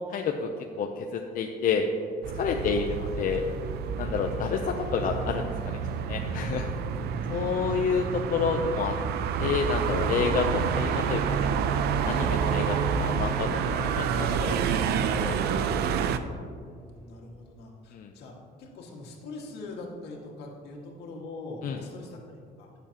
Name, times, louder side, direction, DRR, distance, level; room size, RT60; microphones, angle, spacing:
voice 1, 0.1-0.5 0.8-1.9 2.3-3.4 4.0-5.8 6.1-6.7 7.3-8.9 9.4-11.5 12.0-15.4 15.8-15.9 17.9-18.1 21.6-21.8, left 6 dB, 55° left, 3 dB, 0.6 m, -29 dB
sound 1, 2.2-16.2, right 7 dB, 75° right, 0.6 m, -28 dB
voice 2, 2.5-2.8 6.7-7.3 16.2-18.3 18.6-22.7, left 2 dB, 80° left, -1 dB, 2.0 m, -43 dB
15.0 x 7.0 x 2.9 m, 2.4 s
cardioid pair, 110°, 17 cm